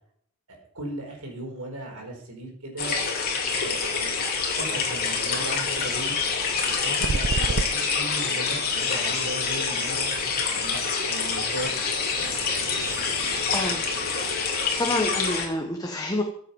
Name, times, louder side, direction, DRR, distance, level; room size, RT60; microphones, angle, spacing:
voice 1, 0.5-3.0 3.4-4.1 4.5-6.1 6.6-11.8, right 1 dB, 85° right, 1 dB, 4.3 m, -37 dB
sound 1, 2.8-15.5, left 5 dB, 45° left, 3.1 m, -26 dB
sound 2, 4.6-15.3, right 4 dB, 60° right, 0.5 m, -37 dB
voice 2, 13.5-13.8 14.8-16.2, left 1 dB, 15° left, 3 dB, 1.2 m, -27 dB
14.5 x 7.9 x 5.3 m, 0.66 s
head